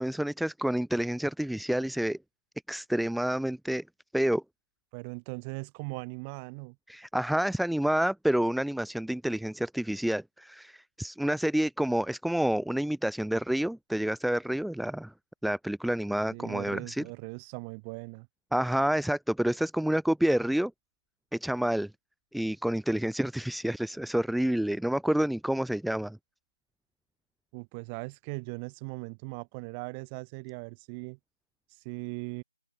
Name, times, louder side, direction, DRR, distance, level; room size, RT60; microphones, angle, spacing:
voice 1, 0.0-2.2 2.7-3.8 4.1-4.4 6.9-15.1 15.4-17.0 18.5-20.7 21.3-21.9 22.3-26.2, right 1 dB, ahead, 0.9 m, -28 dB
voice 2, 4.9-6.8 16.3-18.3 27.5-31.2 31.7-32.4, right 34 dB, 20° right, 6.8 m, -39 dB
open air
figure-of-eight pair, 155°, 0 cm